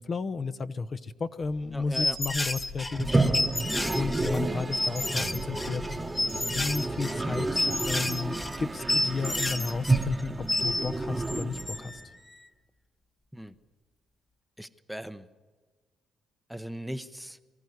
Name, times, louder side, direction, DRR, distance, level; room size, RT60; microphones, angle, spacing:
voice 1, 0.0-12.0, left 4 dB, 40° left, 11 dB, 0.9 m, -34 dB
sound 1, 1.4-10.6, left 1 dB, 85° left, 7.2 m, -48 dB
voice 2, 1.7-2.2 13.3-13.6 14.6-15.3 16.5-17.4, equal, ahead, 12 dB, 0.8 m, -39 dB
sound 2, 1.9-10.9 11.2-12.1, left 1 dB, 15° left, 1.3 m, -30 dB
Toilet flush, 2.9-12.0, right 2 dB, 20° right, 1.1 m, -31 dB
23.0 x 14.0 x 9.7 m, 1.4 s
cardioid pair, 90°, 0 cm